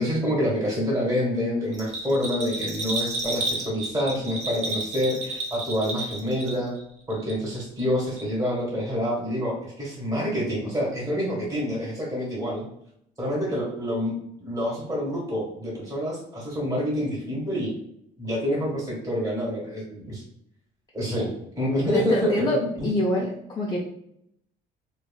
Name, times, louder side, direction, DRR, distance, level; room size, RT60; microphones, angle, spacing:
voice 1, 0.0-6.7 7.1-12.6 13.2-14.1 14.4-17.7 18.2-20.2 20.9-21.3 21.6-22.9, equal, 20° right, -6 dB, 1.5 m, -27 dB
Bell, 1.7-6.8 7.1-7.9 8.2-8.3, right 2 dB, 40° right, 0.9 m, -31 dB
voice 2, 21.9-23.8, left 1 dB, 25° left, -3 dB, 0.5 m, -25 dB
3.0 x 2.4 x 2.3 m, 0.72 s
cardioid pair, 100°, 18 cm